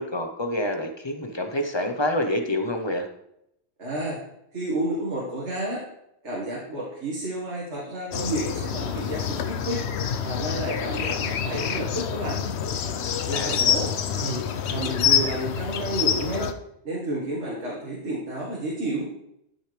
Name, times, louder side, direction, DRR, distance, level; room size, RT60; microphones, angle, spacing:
voice 1, 0.0-3.1 13.3-13.7, left 1 dB, 25° left, 5 dB, 0.9 m, -27 dB
voice 2, 3.8-4.2 4.5-5.8 6.2-9.8 10.2-12.4 13.2-13.9 14.2-16.5 16.8-19.1, right 1 dB, 80° right, -6 dB, 2.1 m, -31 dB
sound 1, 8.1-16.5, left 8 dB, 75° left, 0.9 m, -27 dB
12.5 x 6.3 x 3.4 m, 0.78 s
omnidirectional pair, 1.2 m